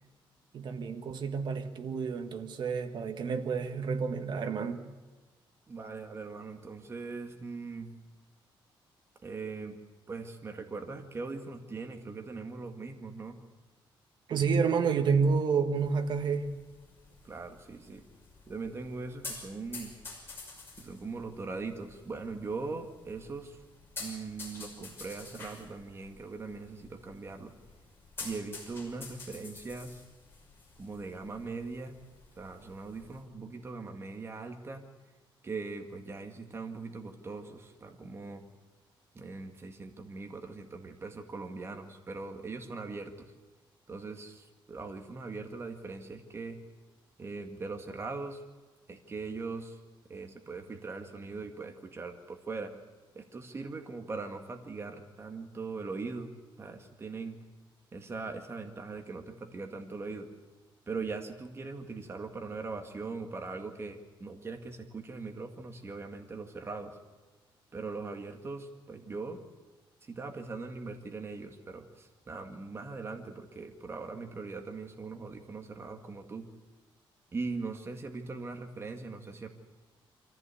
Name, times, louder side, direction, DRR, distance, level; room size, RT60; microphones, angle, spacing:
voice 1, 0.5-4.8 14.3-16.5, right 5 dB, 55° right, 6 dB, 1.6 m, -29 dB
voice 2, 5.7-7.9 9.2-9.8 10.1-13.4 17.2-18.0 18.5-19.9 20.8-23.6 24.0-27.5 28.2-30.0 30.8-32.0 32.4-34.8 35.4-38.4 39.1-43.3 43.9-46.6 47.2-48.4 48.9-49.7 50.1-52.7 53.1-56.3 56.6-57.4 57.9-60.3 60.9-66.9 67.7-69.4 70.1-76.5 77.3-79.5, right 4 dB, 30° right, 4 dB, 1.9 m, -40 dB
sound 1, 15.8-33.2, left 3 dB, 25° left, 5.9 m, -49 dB
24.0 x 15.0 x 8.4 m, 1.3 s
cardioid pair, 140°, 9 cm